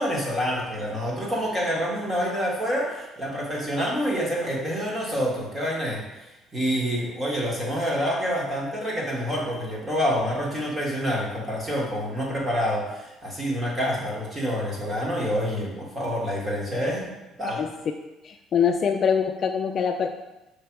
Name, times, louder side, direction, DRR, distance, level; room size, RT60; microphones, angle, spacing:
voice 1, 0.0-6.0 6.5-17.1 17.4-17.6, equal, 15° right, -4 dB, 1.6 m, -27 dB
voice 2, 18.2-20.1, left 7 dB, 35° left, 4 dB, 0.3 m, -23 dB
6.8 x 3.4 x 4.6 m, 1.0 s
cardioid pair, 155°, 0 cm